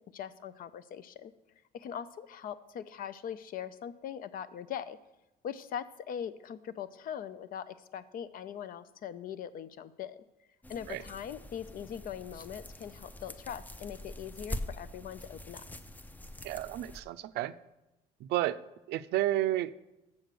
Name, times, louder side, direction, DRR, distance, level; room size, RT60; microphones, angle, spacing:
voice 1, 0.1-1.3 1.7-5.0 5.4-10.2 10.7-15.6, left 9 dB, 55° left, 14 dB, 0.6 m, -41 dB
sound 1, 10.6-17.0, left 1 dB, 10° left, 0.5 m, -44 dB
voice 2, 16.4-17.5 18.2-18.6 18.9-19.7, right 15 dB, 80° right, 13 dB, 0.4 m, -31 dB
7.1 x 6.1 x 6.7 m, 0.97 s
cardioid pair, 110°, 17 cm